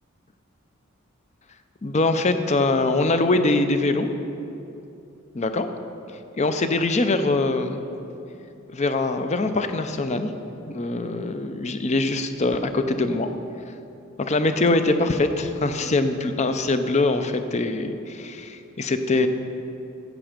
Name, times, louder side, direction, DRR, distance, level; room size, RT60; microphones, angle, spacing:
voice 1, 1.8-4.1 5.3-5.7 6.4-7.8 8.7-10.3 10.7-13.3 14.2-19.3, left 2 dB, 35° left, 8 dB, 0.6 m, -23 dB
13.0 x 8.0 x 5.1 m, 2.8 s
head